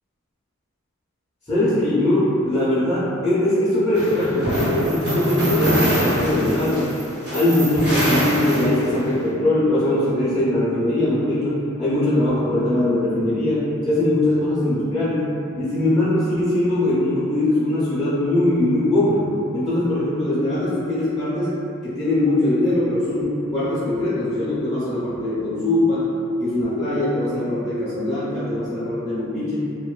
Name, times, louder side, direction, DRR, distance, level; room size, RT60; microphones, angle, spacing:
voice 1, 1.5-6.9 7.3-15.3 15.5-21.6 21.8-26.1 26.4-29.7, left 1 dB, 15° left, -13 dB, 0.4 m, -21 dB
sound 1, 3.9-9.1, right 1 dB, 85° right, 1.0 m, -24 dB
2.5 x 2.1 x 2.3 m, 2.7 s
head